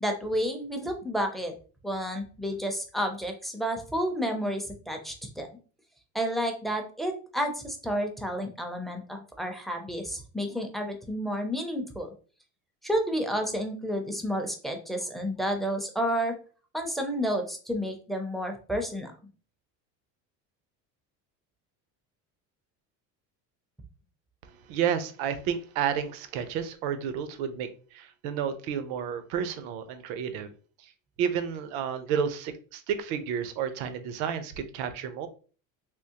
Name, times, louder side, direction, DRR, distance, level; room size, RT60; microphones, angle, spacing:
voice 1, 0.0-1.5 1.8-5.5 6.1-12.1 12.8-16.3 16.7-19.1, equal, ahead, 4 dB, 0.4 m, -30 dB
voice 2, 24.4-30.5 30.8-30.9 31.2-35.3, right 8 dB, 85° right, 10 dB, 0.6 m, -31 dB
3.5 x 2.7 x 2.8 m, 0.39 s
cardioid pair, 140°, 34 cm